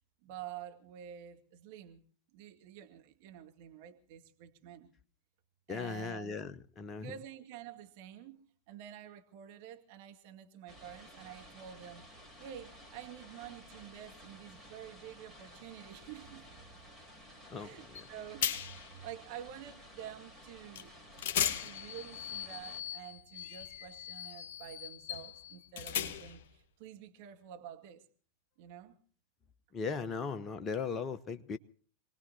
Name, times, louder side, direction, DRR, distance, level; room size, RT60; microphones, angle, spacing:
voice 1, 0.2-2.0 2.3-4.9 5.7-6.3 7.0-12.1 12.4-16.5 17.5-20.9 21.6-28.0 28.6-29.0, right 10 dB, 50° right, 2.0 m, -49 dB
voice 2, 5.7-7.1 17.5-18.0 29.7-31.6, left 5 dB, 25° left, 0.8 m, -38 dB
sound 1, 10.7-22.8, equal, 15° right, 3.9 m, -54 dB
sound 2, 17.9-18.1 18.4-18.9 20.7-20.9 21.2-26.5, left 9 dB, 50° left, 1.6 m, -38 dB
27.5 x 19.0 x 2.8 m
figure-of-eight pair, 90°, 0 cm